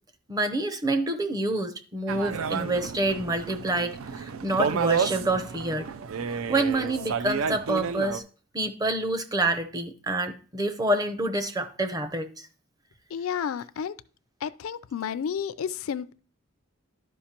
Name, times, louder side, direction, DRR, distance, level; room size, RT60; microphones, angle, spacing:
voice 1, 0.3-5.9 6.5-8.2 8.5-12.5, right 2 dB, 15° right, 0.6 m, -27 dB
sound 1, 2.1-8.2, right 6 dB, 70° right, 0.4 m, -30 dB
voice 2, 13.1-13.9 14.4-16.1, left 7 dB, 75° left, 0.4 m, -31 dB
11.5 x 5.1 x 2.9 m
head